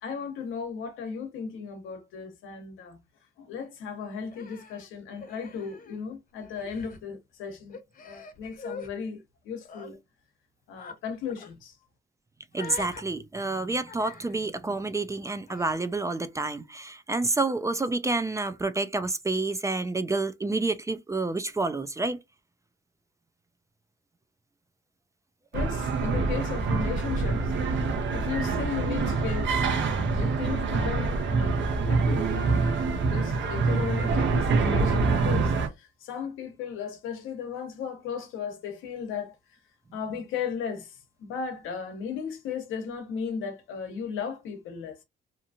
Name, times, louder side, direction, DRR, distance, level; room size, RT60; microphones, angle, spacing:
voice 1, 0.0-3.0 3.4-7.8 8.0-10.0 10.7-11.8 25.5-27.5 28.1-32.3 33.1-39.3 39.9-45.0, left 6 dB, 90° left, 0.9 m, -36 dB
Human voice, 4.3-6.1 6.4-7.0 7.7-8.9 9.6-9.9 10.8-11.0 11.3-11.5 12.5-13.0 13.9-14.4 15.5-15.8, left 4 dB, 45° left, 0.8 m, -44 dB
voice 2, 12.5-22.2, right 3 dB, 15° right, 0.4 m, -29 dB
sound 1, 25.5-35.7, right 4 dB, 70° right, 0.8 m, -25 dB
2.8 x 2.4 x 2.7 m
cardioid pair, 90°, 20 cm